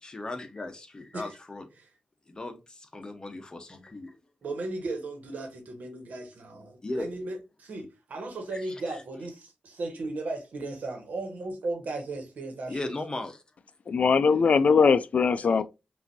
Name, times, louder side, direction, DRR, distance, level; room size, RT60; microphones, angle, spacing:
voice 1, 0.0-1.7 2.3-4.2 6.8-7.1 8.5-9.0 12.7-13.4 15.4-15.6, left 2 dB, 30° left, 1.0 m, -37 dB
voice 2, 4.4-12.8, right 2 dB, 80° right, 1.3 m, -36 dB
voice 3, 13.9-15.6, left 5 dB, 60° left, 0.4 m, -21 dB
5.5 x 2.7 x 2.7 m
cardioid pair, 80°, 3 cm